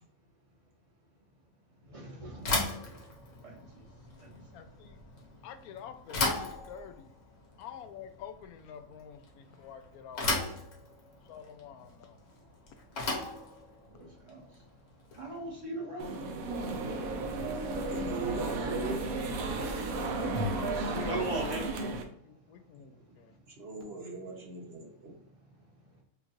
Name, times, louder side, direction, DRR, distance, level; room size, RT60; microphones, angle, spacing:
voice 1, 1.9-2.5 2.8-3.0 3.4-3.8 4.2-4.4 13.9-14.4 15.2-16.2 21.1-21.8, right 2 dB, 25° right, -2 dB, 1.0 m, -38 dB
Bicycle / Thump thud, 2.4-15.5, left 2 dB, 60° left, 1.4 m, -37 dB
voice 2, 4.5-5.0 5.4-7.1 7.6-10.6 11.3-12.2 20.8-21.2 22.2-23.4, left 8 dB, 85° left, 8 dB, 1.1 m, -47 dB
sound 1, 16.0-22.0, right 2 dB, 75° right, 1.1 m, -33 dB
voice 3, 17.9-19.4 20.5-20.9 23.6-25.1, right 3 dB, 50° right, 1 dB, 0.9 m, -40 dB
5.3 x 2.4 x 2.9 m, 0.64 s
omnidirectional pair, 1.5 m